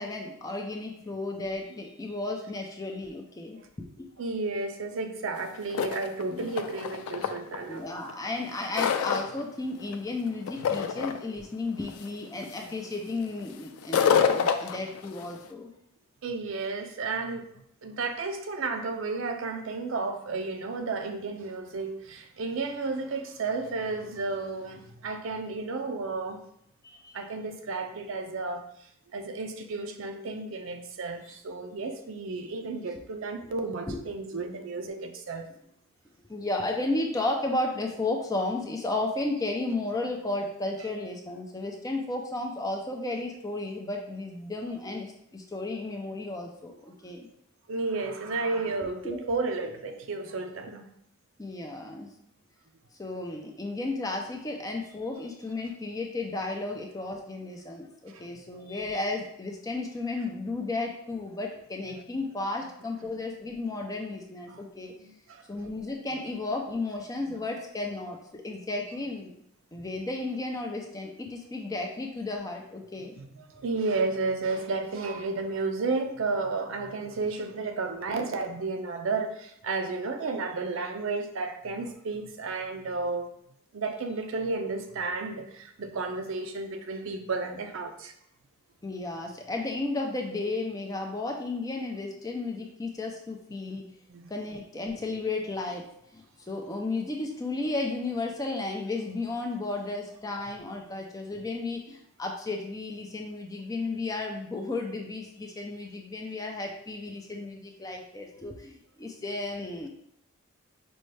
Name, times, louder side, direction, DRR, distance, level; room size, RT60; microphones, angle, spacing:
voice 1, 0.0-4.1 6.3-6.5 7.7-15.7 26.8-27.2 31.2-31.4 33.4-33.5 33.9-34.0 36.3-47.3 49.0-49.2 51.4-52.2 53.0-64.9 65.5-69.3 69.7-73.2 88.8-93.8 94.3-95.8 96.1-109.9, left 2 dB, 15° left, 1 dB, 0.4 m, -33 dB
voice 2, 4.2-7.8 16.2-17.5 17.8-26.4 27.1-28.7 29.1-35.5 40.8-40.9 47.7-50.9 58.1-58.3 58.8-58.9 61.9-62.0 64.5-64.6 65.0-65.5 67.3-67.4 73.0-83.3 83.7-88.1 94.1-94.3, right 3 dB, 65° right, 6 dB, 0.4 m, -32 dB
sound 1, 5.4-5.5 5.7-7.6 8.1-9.4 9.8-10.2 10.5-11.2 11.9-12.0 12.4-12.7 13.8-15.4, left 7 dB, 90° left, 0.3 m, -27 dB
5.2 x 2.2 x 3.2 m, 0.73 s
head